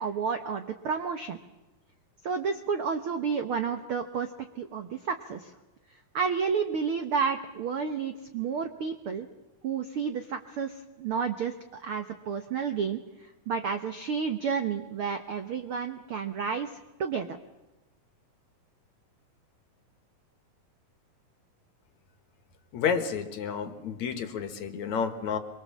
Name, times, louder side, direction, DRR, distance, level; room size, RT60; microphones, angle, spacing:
voice 1, 0.0-1.4 2.2-4.3 4.5-5.5 6.1-9.3 9.6-13.0 13.5-16.7 17.0-17.3, right 6 dB, 70° right, 7 dB, 1.3 m, -31 dB
voice 2, 22.7-25.4, left 6 dB, 60° left, 8 dB, 2.6 m, -30 dB
25.5 x 22.5 x 7.3 m, 1.1 s
omnidirectional pair, 4.0 m